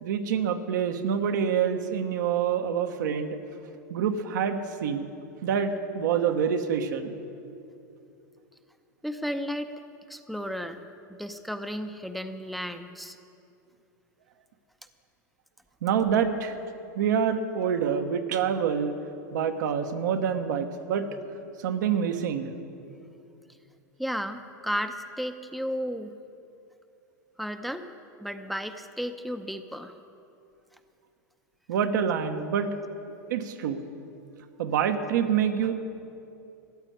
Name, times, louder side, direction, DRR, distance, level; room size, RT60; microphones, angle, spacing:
voice 1, 0.0-3.4 3.9-5.1 5.4-7.1 15.8-16.6 17.0-18.9 19.3-21.1 21.6-22.5 31.7-32.7 33.3-33.8 34.6-35.7, right 7 dB, 75° right, 6 dB, 1.2 m, -26 dB
voice 2, 9.0-9.7 10.1-10.8 11.1-13.2 24.0-26.1 27.4-27.9 28.2-30.0, equal, ahead, 7 dB, 0.7 m, -33 dB
14.0 x 9.1 x 8.6 m, 2.7 s
hypercardioid pair, 110°, 10 cm